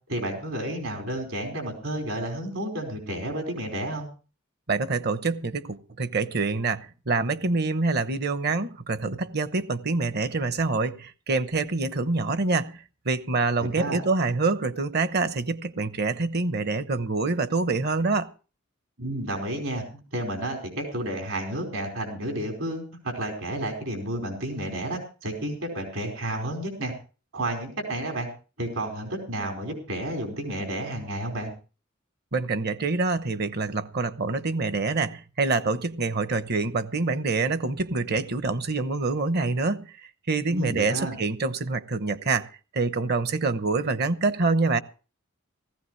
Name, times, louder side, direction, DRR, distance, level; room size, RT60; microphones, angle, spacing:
voice 1, 0.1-4.1 13.6-14.0 19.0-26.9 27.3-28.3 28.6-31.5 40.5-41.2, right 1 dB, 75° right, 4.9 m, -31 dB
voice 2, 4.7-18.3 32.3-42.5 42.7-44.8, right 3 dB, 55° right, 0.9 m, -26 dB
17.5 x 15.5 x 3.2 m
head